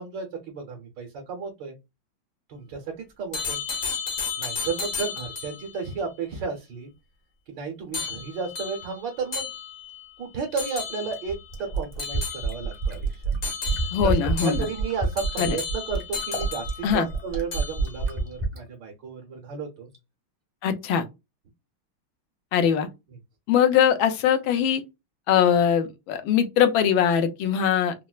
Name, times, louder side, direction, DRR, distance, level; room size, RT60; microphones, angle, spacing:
voice 1, 0.0-1.8 2.5-3.6 4.4-6.9 7.5-9.5 10.2-13.2 13.7-19.9, right 5 dB, 65° right, 1.5 m, -33 dB
sound 1, 3.3-5.7 7.9-10.0 10.6-11.3 12.0-12.9 13.4-17.2 17.5-18.1, left 5 dB, 50° left, 1.0 m, -33 dB
Fill (with liquid), 10.5-18.6 19.9-20.0, right 4 dB, 35° right, 0.7 m, -28 dB
voice 2, 13.9-14.6 15.4-15.6 16.8-17.1 20.6-21.0 22.5-22.9 23.5-24.8 25.3-27.9, left 8 dB, 75° left, 1.4 m, -21 dB
4.3 x 2.0 x 2.3 m
omnidirectional pair, 2.2 m